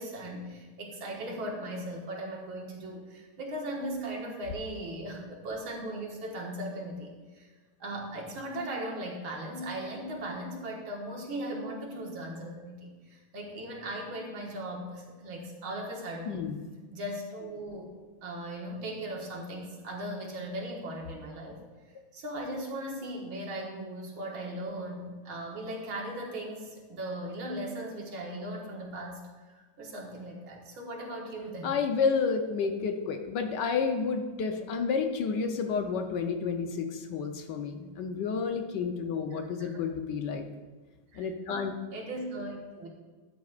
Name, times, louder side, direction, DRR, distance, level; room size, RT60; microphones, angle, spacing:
voice 1, 0.0-7.5 7.8-16.4 16.9-17.9 18.2-21.6 22.1-29.2 29.5-31.7 39.3-39.7 41.1-41.3 41.9-42.9, right 1 dB, 85° right, -1 dB, 2.4 m, -38 dB
voice 2, 16.3-16.6 31.6-40.4 41.1-41.7, left 5 dB, 70° left, 6 dB, 1.3 m, -30 dB
13.0 x 9.4 x 2.4 m, 1.4 s
omnidirectional pair, 2.2 m